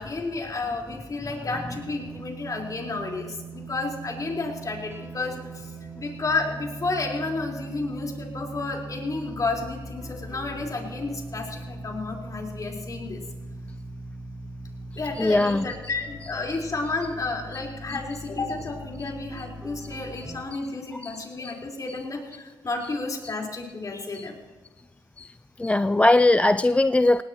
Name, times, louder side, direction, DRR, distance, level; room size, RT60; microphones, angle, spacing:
voice 1, 0.0-13.2 15.0-24.4, left 3 dB, 40° left, 0 dB, 4.2 m, -31 dB
sound 1, 1.5-20.4, right 2 dB, 25° right, 1.7 m, -40 dB
voice 2, 15.2-15.6 21.0-21.2 21.4-21.5 24.1-24.3 25.2-25.3 25.6-27.2, left 2 dB, 15° left, 13 dB, 0.3 m, -20 dB
18.5 x 18.5 x 3.0 m, 1.4 s
cardioid pair, 70°, 9 cm